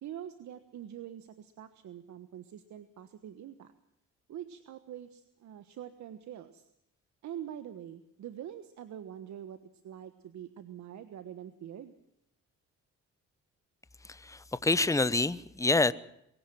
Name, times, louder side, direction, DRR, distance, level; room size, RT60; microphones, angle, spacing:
voice 1, 0.0-3.7 4.3-6.7 7.2-9.6 9.8-12.0, right 10 dB, 70° right, 1.4 m, -44 dB
voice 2, 14.0-15.9, left 3 dB, 10° left, 0.9 m, -27 dB
23.0 x 16.5 x 7.5 m
cardioid pair, 90°, 30 cm